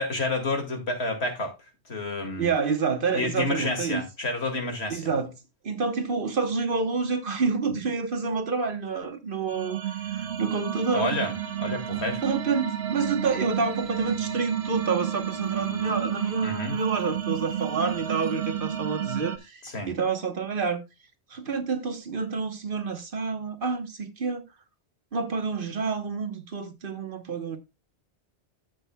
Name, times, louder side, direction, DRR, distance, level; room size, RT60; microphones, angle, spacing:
voice 1, 0.0-1.5 1.9-2.5 3.1-5.1 10.9-11.3 11.6-12.2 16.4-16.8 19.6-19.9, left 2 dB, 70° left, 2.3 m, -29 dB
voice 2, 2.4-4.1 4.9-5.3 5.6-11.1 12.2-20.8 21.3-24.4 25.1-27.6, right 5 dB, 55° right, 1.2 m, -28 dB
sound 1, 9.5-19.4, right 9 dB, 70° right, 1.3 m, -31 dB
12.5 x 7.8 x 2.2 m
omnidirectional pair, 1.1 m